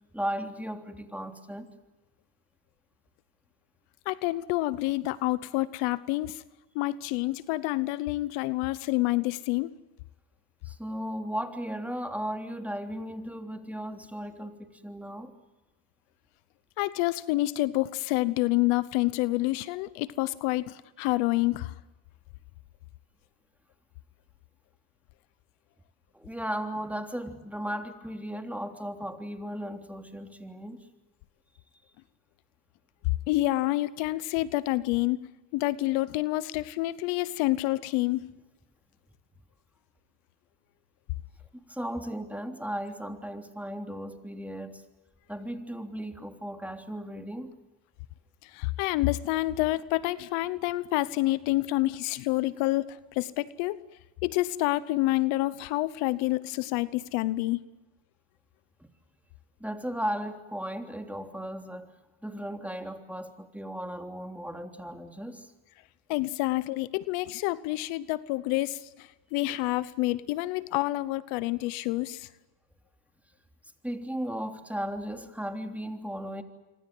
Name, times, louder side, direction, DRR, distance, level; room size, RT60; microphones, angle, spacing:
voice 1, 0.1-1.7 10.6-15.3 26.1-30.8 41.7-44.8 45.3-47.5 58.8-58.9 59.6-61.9 62.2-65.5 73.8-76.4, equal, 5° right, 5 dB, 3.2 m, -36 dB
voice 2, 4.1-6.4 6.7-9.7 16.8-21.7 33.3-35.3 35.5-38.3 48.5-53.8 54.2-57.6 66.1-72.3, left 18 dB, 85° left, 17 dB, 1.0 m, -28 dB
27.0 x 25.0 x 7.8 m, 1.1 s
supercardioid pair, 75°, 48 cm